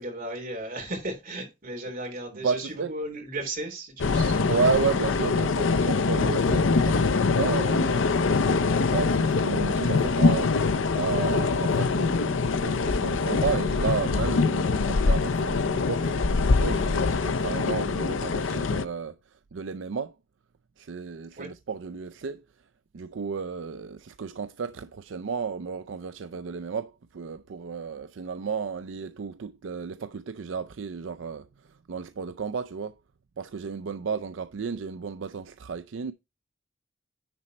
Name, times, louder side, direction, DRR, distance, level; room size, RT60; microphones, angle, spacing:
voice 1, 0.0-4.6 21.4-21.5, right 1 dB, 45° right, 3.6 m, -35 dB
voice 2, 2.4-2.9 4.5-20.1 20.8-22.4 22.9-32.9 33.4-36.1, right 5 dB, 75° right, 0.5 m, -32 dB
sound 1, 4.0-18.8, left 4 dB, 80° left, 0.6 m, -24 dB
10.0 x 4.2 x 4.3 m
head